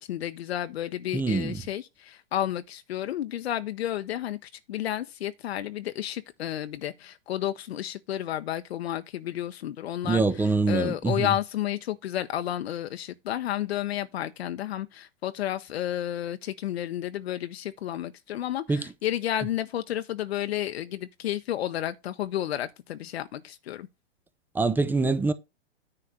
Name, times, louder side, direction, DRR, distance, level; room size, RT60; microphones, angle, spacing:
voice 1, 0.0-10.2 10.7-23.9, left 12 dB, 75° left, 0.8 m, -31 dB
voice 2, 1.1-1.6 10.0-11.3 18.7-18.9 24.5-25.3, right 3 dB, 5° right, 0.4 m, -24 dB
9.8 x 3.3 x 6.4 m
hypercardioid pair, 120°, 32 cm